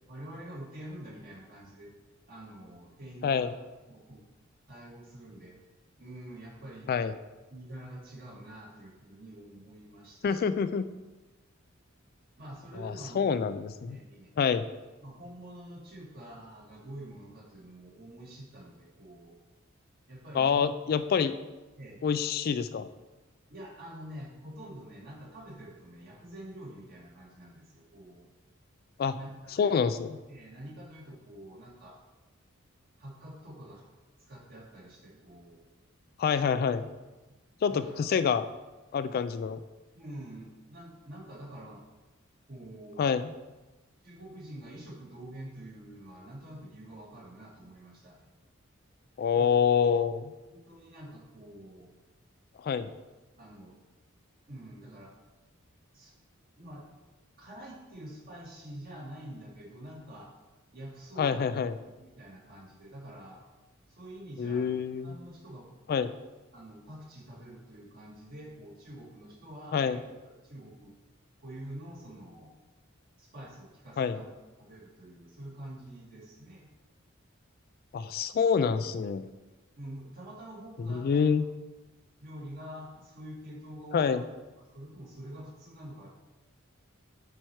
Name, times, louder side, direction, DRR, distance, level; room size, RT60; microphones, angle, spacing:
voice 1, 0.1-1.9 2.3-3.5 3.9-4.2 4.7-5.6 6.0-6.9 7.5-10.5 12.4-13.2 13.8-14.3 15.0-19.4 20.1-20.6 21.8-22.0 23.5-28.3 29.1-29.9 30.3-32.0 33.0-33.9 34.3-35.6 37.6-38.1 39.9-41.8 42.5-43.1 44.0-48.3 49.4-49.5 50.5-51.9 53.4-53.7 54.5-55.1 55.9-56.1 56.6-56.8 57.4-60.3 60.7-61.5 61.8-63.4 63.9-65.7 66.5-70.9 71.4-72.5 73.2-74.3 74.6-76.7 79.8-81.3 82.2-84.2 84.7-86.2, right 1 dB, 45° right, -4 dB, 2.3 m, -46 dB
voice 2, 3.2-3.5 6.9-7.1 10.2-10.9 12.8-14.0 14.4-14.7 20.3-21.3 22.0-22.9 29.0-29.2 29.6-30.2 36.2-36.9 37.6-38.5 38.9-39.6 43.0-43.3 49.2-50.3 52.6-52.9 61.2-61.7 64.4-65.1 65.9-66.1 69.7-70.0 74.0-74.2 77.9-79.3 80.8-81.5 83.9-84.2, left 6 dB, 45° left, 12 dB, 0.3 m, -27 dB
8.7 x 4.5 x 4.7 m, 1.1 s
head